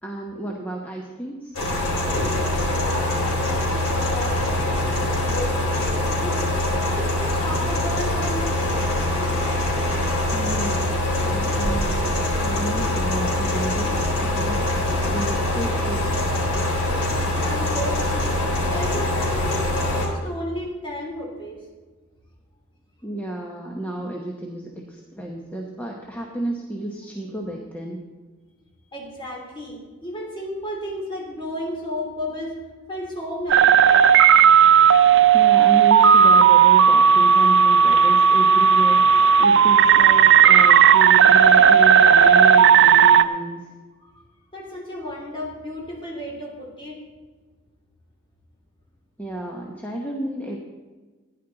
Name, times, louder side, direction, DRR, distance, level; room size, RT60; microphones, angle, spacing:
voice 1, 0.0-1.5 10.3-12.1 12.4-16.2 23.0-28.0 35.3-43.7 49.2-50.6, right 1 dB, 10° left, -1 dB, 1.0 m, -32 dB
sound 1, 1.5-20.1, left 1 dB, 80° left, 3.6 m, -23 dB
voice 2, 2.6-6.4 6.9-9.1 17.4-18.4 18.7-19.6 20.0-21.6 28.9-32.6 32.9-34.1 44.0-44.1 44.5-47.0, left 1 dB, 25° left, -2 dB, 3.2 m, -33 dB
sound 2, 33.5-43.3, right 7 dB, 60° right, 0.5 m, -13 dB
15.5 x 10.5 x 3.9 m, 1.3 s
head